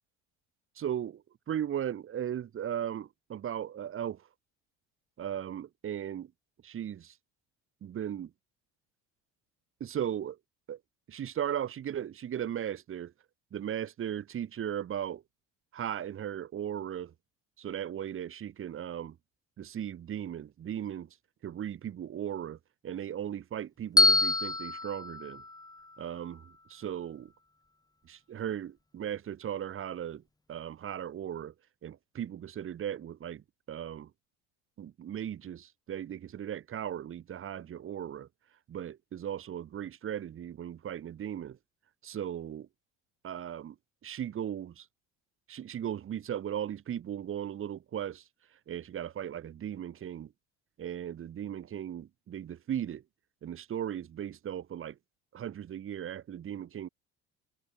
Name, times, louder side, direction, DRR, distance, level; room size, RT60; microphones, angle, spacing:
voice 1, 0.8-1.2 1.5-4.2 5.2-6.3 6.6-7.1 7.8-8.3 9.8-10.4 10.7-10.8 11.1-13.1 13.5-15.2 15.7-17.1 17.6-19.2 19.6-21.1 21.4-22.6 22.8-25.4 26.0-26.4 26.7-27.3 28.1-30.2 30.5-31.5 31.8-34.1 34.8-38.3 38.7-41.6 42.0-42.7 43.2-43.8 44.0-44.9 45.5-48.2 48.7-50.3 50.8-53.0 53.4-55.0 55.3-56.9, right 10 dB, 40° right, 1.9 m, -37 dB
Bell, 24.0-26.1, left 2 dB, 10° left, 2.9 m, -27 dB
supercardioid pair, 95°, 32 cm